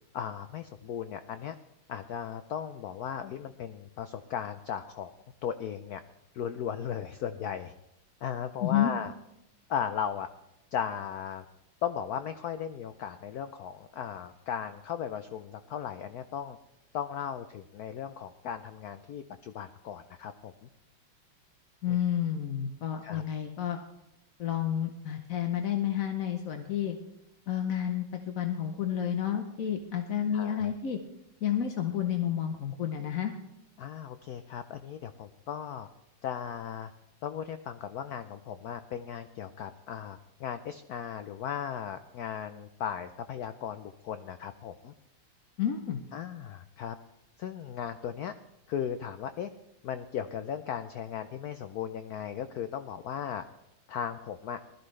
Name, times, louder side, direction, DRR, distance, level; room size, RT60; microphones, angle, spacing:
voice 1, 0.1-1.5 1.9-5.1 5.4-6.0 6.3-7.7 8.2-9.1 9.7-10.3 10.7-11.4 11.8-16.6 16.9-20.5 21.9-22.0 23.0-23.2 30.3-30.7 33.8-35.9 36.2-36.9 37.2-44.9 46.1-47.0 47.4-48.3 48.7-49.5 49.8-53.4 53.9-54.6, left 8 dB, 85° left, 10 dB, 0.8 m, -36 dB
voice 2, 8.6-8.9 21.8-23.8 24.4-27.0 27.5-31.0 31.4-33.3 45.6-46.0, left 10 dB, 55° left, 5 dB, 1.0 m, -30 dB
20.0 x 13.0 x 3.2 m, 0.87 s
omnidirectional pair, 2.3 m